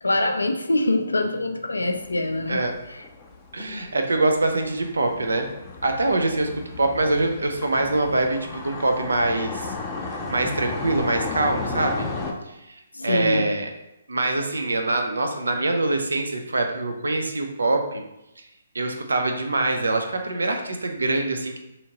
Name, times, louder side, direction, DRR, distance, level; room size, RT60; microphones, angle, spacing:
voice 1, 0.0-2.6 12.9-13.4, left 2 dB, 85° left, 6 dB, 0.3 m, -24 dB
sound 1, 1.8-12.3, left 3 dB, 20° left, 0.4 m, -34 dB
voice 2, 3.5-5.5 5.8-6.5 6.8-9.7 10.3-12.1 12.7-13.7 14.1-18.0 18.7-21.6, right 2 dB, 80° right, 4 dB, 0.4 m, -24 dB
2.8 x 2.6 x 2.8 m, 0.89 s
figure-of-eight pair, 135°, 0 cm